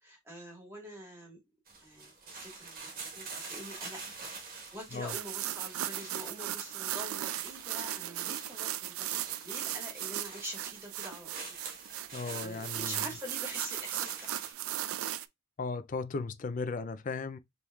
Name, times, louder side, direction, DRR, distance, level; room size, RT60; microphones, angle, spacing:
voice 1, 0.0-1.4 1.8-4.0 4.4-9.1 9.4-11.5 12.2-14.3, equal, 10° right, 1.5 m, -45 dB
sound 1, 1.7-14.5, right 4 dB, 40° right, 1.2 m, -47 dB
sound 2, 5.1-15.3, right 13 dB, 85° right, 0.3 m, -37 dB
voice 2, 12.1-12.9 15.6-17.4, left 4 dB, 40° left, 0.4 m, -36 dB
5.1 x 3.0 x 2.3 m
head